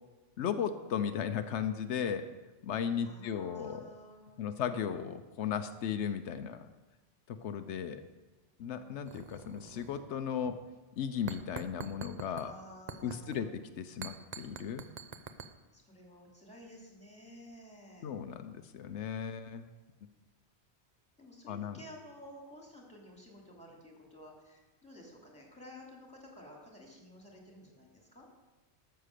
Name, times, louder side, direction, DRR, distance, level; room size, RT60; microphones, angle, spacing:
voice 1, 0.4-2.3 2.6-3.9 4.4-6.7 7.3-8.0 8.6-10.6 11.0-12.5 13.0-13.5 13.8-14.8 18.0-19.6 21.5-21.8, left 8 dB, 85° left, 9 dB, 1.0 m, -36 dB
voice 2, 3.0-4.7 12.4-13.5 15.7-18.1 21.2-28.3, equal, 5° left, -1 dB, 2.7 m, -53 dB
sound 1, 9.0-10.2 10.5-10.6 11.3-12.5 12.9-13.4 14.0-15.5, right 5 dB, 45° right, 0.7 m, -45 dB
12.5 x 6.8 x 6.6 m, 1.2 s
omnidirectional pair, 1.2 m